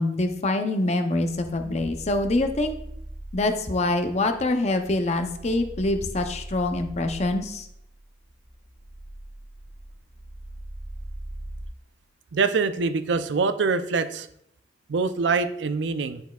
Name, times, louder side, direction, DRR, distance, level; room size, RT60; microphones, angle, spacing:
voice 1, 0.0-2.8 3.3-7.7, left 2 dB, 40° left, 7 dB, 0.6 m, -25 dB
sound 1, 1.2-11.7, right 1 dB, 30° right, 0.8 m, -41 dB
voice 2, 12.3-14.3 14.9-16.2, right 4 dB, 85° right, 10 dB, 0.5 m, -24 dB
10.0 x 4.4 x 2.3 m, 0.74 s
head